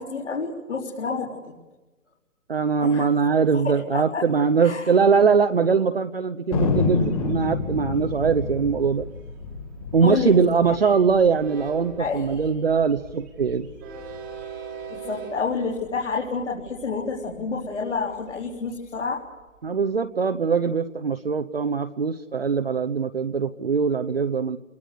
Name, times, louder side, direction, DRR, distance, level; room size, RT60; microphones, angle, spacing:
voice 1, 0.0-1.5 2.8-3.1 3.6-4.2 4.6-4.9 10.0-10.4 12.0-12.4 14.9-19.2, left 4 dB, 55° left, 0 dB, 4.1 m, -29 dB
voice 2, 2.5-9.1 9.9-13.7 19.6-24.6, right 5 dB, 45° right, 7 dB, 0.9 m, -22 dB
Thunder, 6.5-11.3 11.6-11.7 11.9-12.5 12.9-14.1, left 4 dB, 25° left, 2.8 m, -28 dB
Train, 6.8-19.8, right 5 dB, 10° right, 1.7 m, -43 dB
29.0 x 22.5 x 6.7 m, 1.1 s
hypercardioid pair, 175°, 41 cm